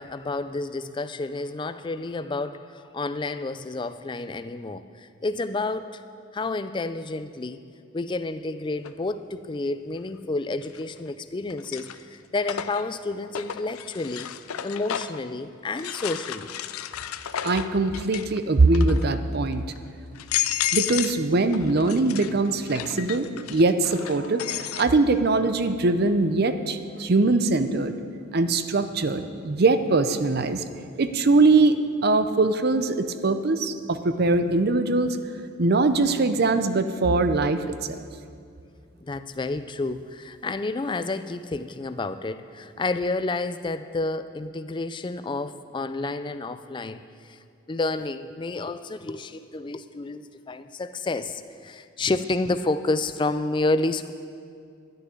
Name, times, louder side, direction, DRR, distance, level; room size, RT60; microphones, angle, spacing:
voice 1, 0.0-6.0 6.3-7.6 7.9-14.3 14.6-16.5 39.0-47.4 47.7-54.1, left 2 dB, 20° left, 12 dB, 0.3 m, -30 dB
sound 1, 8.8-8.9 10.6-11.1 11.5-15.3 15.8-18.4 18.7-19.2 19.7-19.8 20.2-21.2 21.5-24.9, left 11 dB, 85° left, 0.5 m, -32 dB
voice 2, 17.4-19.6 20.7-27.9 28.3-30.6 31.0-35.2 35.6-38.0, right 3 dB, 45° right, 10 dB, 0.6 m, -22 dB
12.0 x 6.6 x 9.6 m, 2.3 s
head